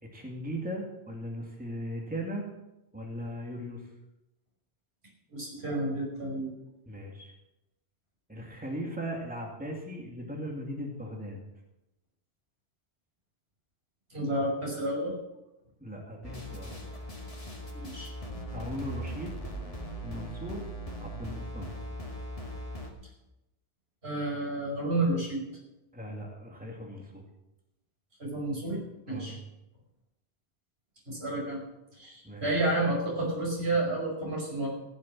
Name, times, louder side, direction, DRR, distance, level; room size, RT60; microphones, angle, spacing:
voice 1, 0.0-2.4 2.9-3.9 6.9-7.3 8.3-11.4 15.8-16.8 18.5-19.4 20.0-20.6 21.0-21.7 25.9-27.2 29.1-29.3 32.2-32.4, equal, 10° right, -1 dB, 2.5 m, -38 dB
voice 2, 5.3-6.5 14.1-15.1 17.7-18.1 24.0-25.4 28.2-29.4 31.1-31.6 31.9-34.7, right 2 dB, 70° right, -3 dB, 5.5 m, -30 dB
sound 1, 16.2-22.9, equal, 35° left, 2.1 m, -39 dB
15.5 x 7.4 x 7.6 m, 0.94 s
omnidirectional pair, 1.1 m